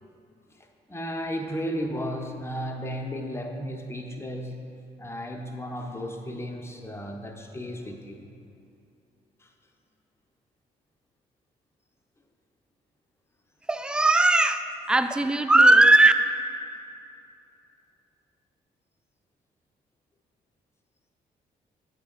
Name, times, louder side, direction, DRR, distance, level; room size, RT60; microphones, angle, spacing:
voice 1, 0.5-4.7 5.0-8.2 9.4-9.5 16.7-16.8, equal, 10° left, 3 dB, 0.8 m, -34 dB
voice 2, 13.7-16.1, right 2 dB, 5° right, 10 dB, 0.3 m, -18 dB
8.4 x 3.6 x 5.2 m, 2.6 s
hypercardioid pair, 40°, 21 cm